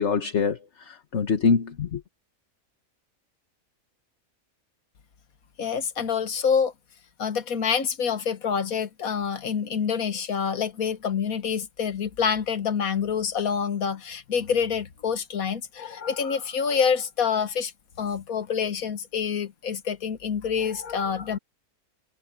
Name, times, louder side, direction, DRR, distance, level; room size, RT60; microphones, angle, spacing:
voice 1, 0.0-2.0, left 5 dB, 50° left, 1.5 m, -24 dB
voice 2, 5.6-6.7 7.2-17.7 18.0-21.4, left 6 dB, 70° left, 1.7 m, -27 dB
omnidirectional pair, 1.6 m